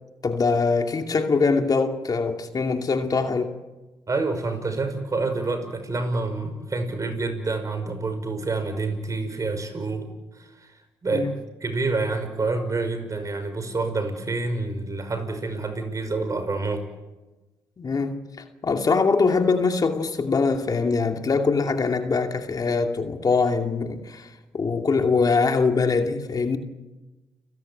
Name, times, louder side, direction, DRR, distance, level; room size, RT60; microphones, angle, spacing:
voice 1, 0.2-3.5 11.1-11.3 17.8-18.2 18.6-24.3 24.5-26.6, left 4 dB, 45° left, 2.5 m, -23 dB
voice 2, 4.1-10.1 10.4-10.7 11.0-11.3 11.6-16.8, right 3 dB, 35° right, 5.6 m, -27 dB
30.0 x 17.0 x 9.0 m
supercardioid pair, 55°, 9 cm